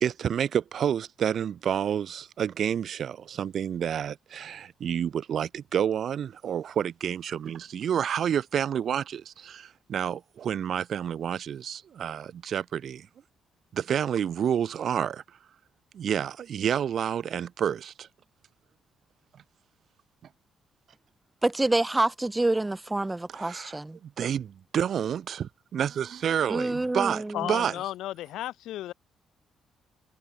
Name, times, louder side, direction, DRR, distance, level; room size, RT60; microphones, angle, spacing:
voice 1, 0.0-13.1 13.7-15.2 15.9-18.1 23.4-23.8 24.0-27.7, right 9 dB, 60° right, 1.3 m, -29 dB
voice 2, 21.4-24.0 26.5-27.6, right 2 dB, 15° right, 2.8 m, -27 dB
voice 3, 27.3-28.9, left 14 dB, 85° left, 2.5 m, -34 dB
cardioid pair, 90°, 0 cm